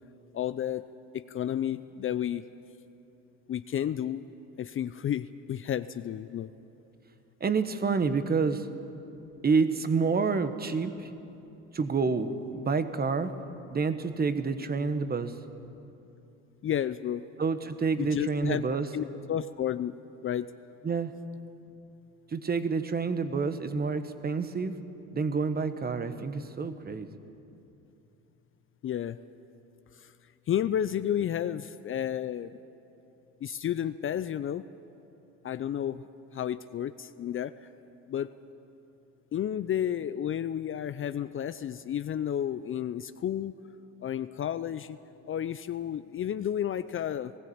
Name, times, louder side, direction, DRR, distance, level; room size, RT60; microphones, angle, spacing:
voice 1, 0.3-0.8 1.1-2.4 3.5-4.2 4.6-6.5 16.6-17.2 18.0-18.6 18.9-19.9 20.2-20.5 28.8-29.2 30.0-30.1 30.5-32.5 33.4-34.7 35.4-36.1 36.3-37.7 38.1-38.3 39.3-43.5 44.0-45.0 45.3-47.3, left 10 dB, 40° left, 13 dB, 0.6 m, -31 dB
voice 2, 7.4-8.7 9.4-11.1 11.7-13.3 13.7-15.4 17.4-18.9 20.8-21.1 22.3-24.7 25.1-27.1, right 4 dB, 30° right, 10 dB, 1.3 m, -28 dB
20.0 x 15.5 x 8.7 m, 2.9 s
supercardioid pair, 80°, 32 cm